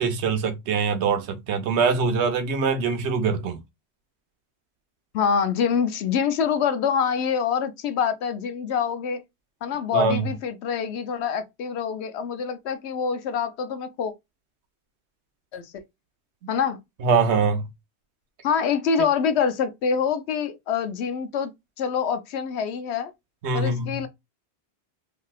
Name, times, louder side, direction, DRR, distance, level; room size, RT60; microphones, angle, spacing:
voice 1, 0.0-3.6 9.9-10.2 17.0-17.7 23.4-24.0, right 5 dB, 85° right, 1.0 m, -23 dB
voice 2, 5.1-9.2 9.6-14.1 15.5-15.7 16.5-16.8 18.4-21.5 21.8-23.1 23.5-24.1, left 6 dB, 80° left, 0.9 m, -25 dB
3.1 x 2.6 x 2.3 m
omnidirectional pair, 1.1 m